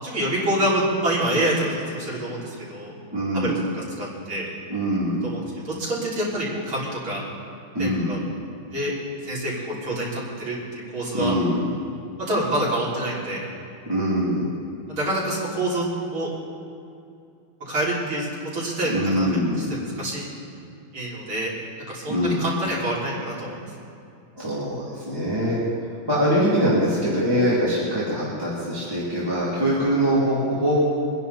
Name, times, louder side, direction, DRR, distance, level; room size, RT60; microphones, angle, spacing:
voice 1, 0.0-2.9 3.3-4.5 5.2-7.2 7.8-8.2 8.7-8.9 9.2-10.6 10.9-11.3 12.3-13.4 14.9-15.8 16.1-16.3 17.7-18.3 18.5-19.3 20.0-20.3 20.9-21.5 21.9-23.6, right 1 dB, 75° right, -7 dB, 4.6 m, -26 dB
voice 2, 3.1-3.5 4.7-5.3 7.7-8.2 11.1-11.7 13.9-14.5 18.9-19.7 22.1-22.4 24.3-25.6 26.1-30.8, equal, 10° right, -9 dB, 2.7 m, -23 dB
23.5 x 10.5 x 4.2 m, 2.5 s
omnidirectional pair, 2.2 m